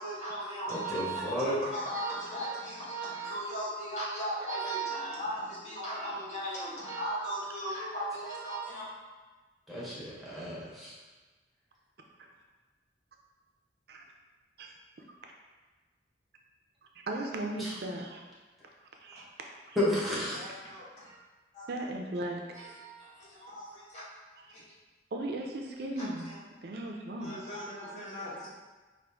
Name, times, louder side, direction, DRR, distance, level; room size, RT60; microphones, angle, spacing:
voice 1, 0.0-8.9 20.3-21.1 21.5-21.6 22.5-24.0 24.5-24.6 26.0-26.4 27.2-28.5, right 1 dB, 40° left, -8 dB, 1.4 m, -37 dB
voice 2, 0.7-1.6 9.7-11.0 17.6-17.7 19.7-20.4, left 1 dB, ahead, -8 dB, 1.1 m, -32 dB
voice 3, 17.1-18.2 19.0-19.8 21.7-22.7 25.1-26.3 26.6-27.4, right 1 dB, 60° right, 1 dB, 0.5 m, -37 dB
5.0 x 2.6 x 3.5 m, 1.3 s
head